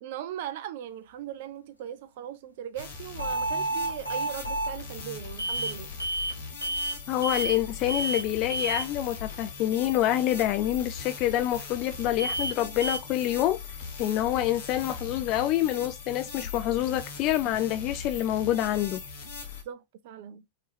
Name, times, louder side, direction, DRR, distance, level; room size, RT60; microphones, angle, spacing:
voice 1, 0.0-5.9 19.6-20.4, right 10 dB, 50° right, 0.4 m, -39 dB
sound 1, 2.8-19.6, left 5 dB, 55° left, 1.0 m, -40 dB
sound 2, 3.2-4.8 5.4-5.7 6.0-6.4 6.6-7.0 7.2-7.6 7.9-8.2 8.5-8.9 12.2-12.5 12.8-13.0, right 2 dB, 90° left, 0.8 m, -30 dB
voice 2, 7.1-13.6 14.0-19.0, left 13 dB, 40° left, 0.3 m, -27 dB
3.5 x 2.7 x 3.3 m
figure-of-eight pair, 90°, 0 cm